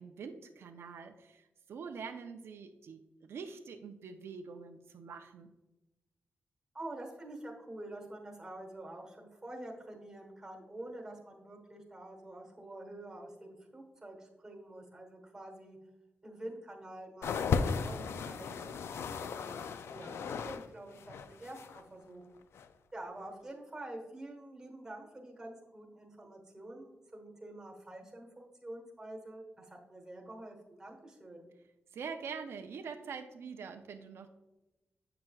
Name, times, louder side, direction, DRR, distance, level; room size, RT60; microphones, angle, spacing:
voice 1, 0.0-5.5 31.9-34.3, right 5 dB, 80° right, 5 dB, 0.5 m, -45 dB
voice 2, 6.7-15.8 16.2-19.6 19.9-22.4 22.9-31.4, right 1 dB, 15° right, 1 dB, 1.2 m, -47 dB
sound 1, 17.2-20.7 20.9-21.8 22.5-22.7, left 5 dB, 85° left, 0.3 m, -35 dB
7.6 x 5.8 x 2.3 m, 1.0 s
wide cardioid pair, 165°, 4 cm